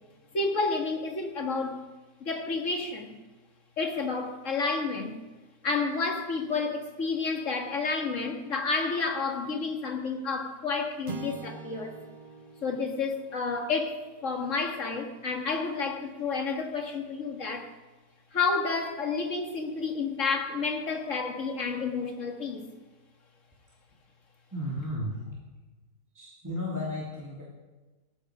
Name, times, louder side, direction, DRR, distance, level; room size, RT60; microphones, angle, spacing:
voice 1, 0.3-1.8 2.2-3.2 3.8-5.2 5.6-12.0 12.6-17.7 18.3-22.7, left 4 dB, 50° left, 4 dB, 2.2 m, -30 dB
sound 1, 11.1-15.5, right 3 dB, 35° right, 1.1 m, -45 dB
voice 2, 24.5-25.4 26.1-27.4, left 1 dB, 10° right, -5 dB, 2.6 m, -34 dB
18.0 x 14.5 x 5.0 m, 1.2 s
omnidirectional pair, 1.8 m